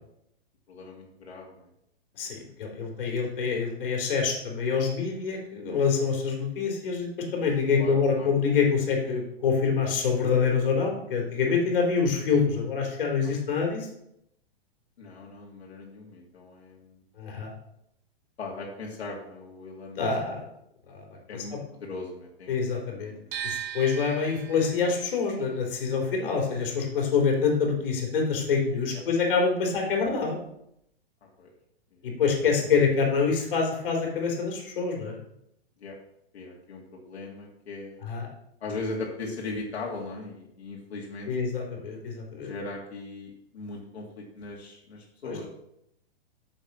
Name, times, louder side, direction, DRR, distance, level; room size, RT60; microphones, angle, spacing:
voice 1, 0.7-1.7 2.2-2.5 5.1-5.3 7.8-8.3 10.8-11.2 13.2-13.3 13.6-13.7 15.0-17.0 18.4-20.1 21.3-22.6 23.1-23.4 28.9-29.0 31.4-31.5 32.4-32.7 35.8-36.0 36.3-38.0 38.6-41.3 42.4-45.5, left 3 dB, 90° left, -2 dB, 2.6 m, -39 dB
voice 2, 2.2-13.9 17.2-17.5 19.9-20.4 20.9-21.0 22.5-23.1 23.4-30.4 32.0-35.2 38.0-38.3 41.3-42.5 45.2-45.4, left 5 dB, 60° left, 0 dB, 3.5 m, -26 dB
sound 1, 23.3-29.3 29.6-30.9, right 9 dB, 20° right, 1.0 m, -41 dB
7.3 x 7.1 x 6.0 m, 0.79 s
hypercardioid pair, 175°, 31 cm